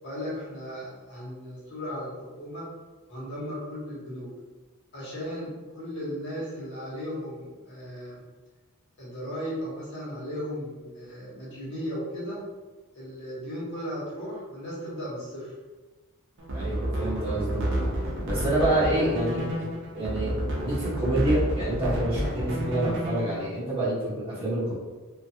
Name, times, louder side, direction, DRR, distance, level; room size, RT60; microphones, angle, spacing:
voice 1, 0.0-2.6 3.1-4.3 4.9-8.2 9.0-12.4 12.9-15.5, equal, 55° left, -8 dB, 1.1 m, -36 dB
sound 1, 16.4-23.5, right 1 dB, 55° right, 0.6 m, -30 dB
voice 2, 16.5-19.7 19.9-20.4 20.6-24.7, right 1 dB, 25° right, -10 dB, 1.2 m, -27 dB
2.5 x 2.4 x 2.8 m, 1.3 s
head